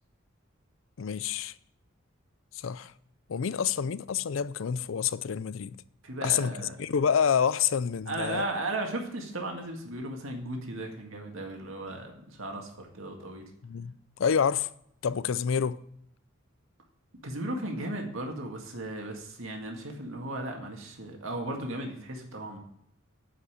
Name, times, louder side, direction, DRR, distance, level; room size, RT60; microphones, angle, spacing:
voice 1, 1.0-1.5 2.5-2.9 3.3-5.8 6.2-8.5 13.6-14.7 15.0-15.8, left 7 dB, 70° left, 0.4 m, -28 dB
voice 2, 6.0-6.8 8.1-13.4 17.2-22.6, right 1 dB, 85° right, 2.0 m, -36 dB
9.8 x 5.5 x 6.6 m
head